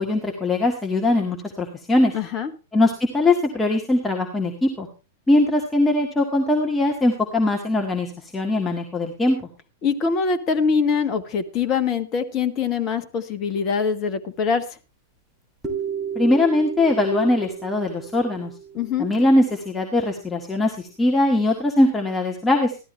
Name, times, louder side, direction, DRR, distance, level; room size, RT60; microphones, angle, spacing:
voice 1, 0.0-2.1 2.7-4.9 5.3-9.5 16.2-18.5 19.0-22.8, left 2 dB, 10° left, 0 dB, 1.8 m, -21 dB
voice 2, 2.1-2.5 9.8-14.6 18.7-19.1, left 5 dB, 30° left, 11 dB, 1.3 m, -23 dB
sound 1, 15.6-19.6, right 7 dB, 10° right, 3.2 m, -33 dB
14.5 x 12.5 x 3.3 m, 0.30 s
figure-of-eight pair, 100°, 0 cm